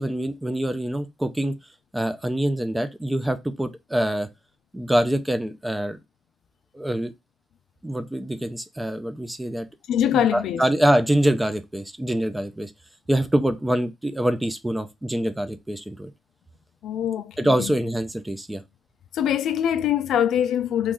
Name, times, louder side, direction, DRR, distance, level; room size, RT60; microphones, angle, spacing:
voice 1, 0.0-1.5 1.9-4.3 4.7-6.0 6.7-7.1 7.8-9.7 10.1-12.7 13.1-16.1 17.4-18.6, right 1 dB, 10° right, 0.5 m, -25 dB
voice 2, 9.9-10.6 16.8-17.7 19.1-20.9, left 10 dB, 75° left, 0.3 m, -23 dB
3.1 x 2.4 x 3.6 m
cardioid pair, 90°, 0 cm